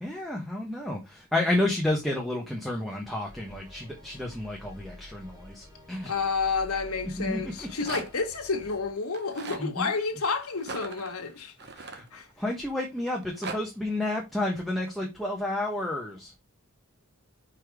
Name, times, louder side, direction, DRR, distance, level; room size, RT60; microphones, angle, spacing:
voice 1, 0.0-6.1 7.2-7.7 9.5-9.9 11.6-16.3, left 1 dB, ahead, 1.2 m, -31 dB
sound 1, 3.3-8.9, left 1 dB, 15° right, 2.1 m, -49 dB
voice 2, 6.0-11.5 12.1-12.3, left 4 dB, 85° left, 1.4 m, -30 dB
Rattle, 7.4-8.3 9.1-9.7 10.6-12.5 13.1-13.6, right 4 dB, 50° right, 1.0 m, -39 dB
5.2 x 4.2 x 4.7 m
head